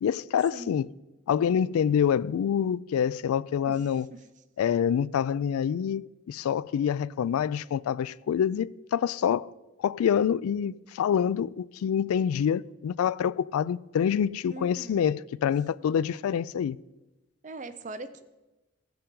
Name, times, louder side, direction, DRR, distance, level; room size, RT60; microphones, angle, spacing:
voice 1, 0.0-0.9 1.3-4.1 4.6-9.5 9.8-16.8, left 8 dB, 90° left, 0.3 m, -26 dB
voice 2, 14.5-15.0 17.4-18.2, right 2 dB, 35° right, 0.6 m, -41 dB
17.0 x 6.8 x 3.8 m
head